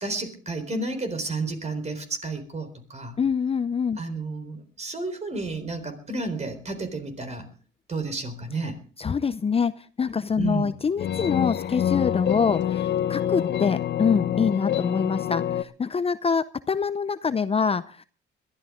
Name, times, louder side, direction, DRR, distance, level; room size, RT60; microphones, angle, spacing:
voice 1, 0.0-3.1 4.0-7.5 7.9-8.8 10.4-10.7, right 3 dB, 35° right, 9 dB, 4.1 m, -31 dB
voice 2, 3.2-4.0 9.0-18.0, left 6 dB, 30° left, 13 dB, 0.6 m, -25 dB
sound 1, 10.3-15.6, left 10 dB, 60° left, 0.9 m, -26 dB
21.5 x 13.0 x 3.7 m, 0.38 s
cardioid pair, 90°, 20 cm